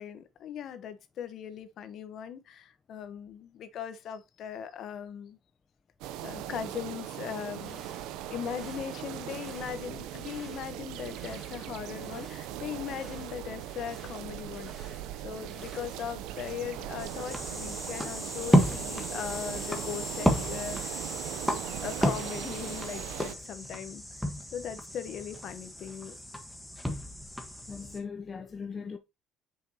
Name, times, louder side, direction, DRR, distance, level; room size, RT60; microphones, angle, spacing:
voice 1, 0.0-5.4 6.2-7.8 8.3-21.1 21.8-24.0 24.5-26.2, left 9 dB, 55° left, 1.1 m, -39 dB
sound 1, 6.0-23.4, right 12 dB, 90° right, 0.7 m, -39 dB
sound 2, 7.6-16.5, right 1 dB, 20° right, 3.8 m, -55 dB
sound 3, 17.0-28.0, equal, ahead, 1.4 m, -32 dB
voice 2, 27.7-29.0, left 5 dB, 25° left, 0.7 m, -39 dB
7.2 x 5.9 x 2.9 m
cardioid pair, 140°, 0 cm